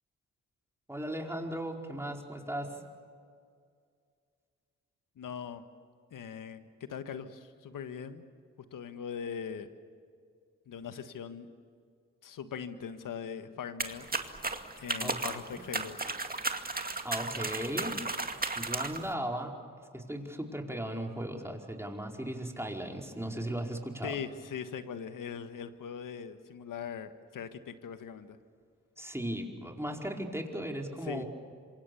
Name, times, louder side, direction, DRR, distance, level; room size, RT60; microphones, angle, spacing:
voice 1, 0.9-2.8 15.0-15.6 17.0-18.0 18.5-19.5 19.9-24.1 29.0-31.3, right 1 dB, 10° right, 1 dB, 4.8 m, -37 dB
voice 2, 5.2-5.6 6.1-8.3 8.7-9.7 10.7-11.5 12.2-14.1 14.8-16.1 24.0-28.4 31.0-31.2, left 7 dB, 75° left, 9 dB, 1.7 m, -41 dB
sound 1, 13.8-19.1, right 3 dB, 25° right, 2.2 m, -35 dB
27.0 x 25.5 x 7.1 m, 2.2 s
supercardioid pair, 45°, 33 cm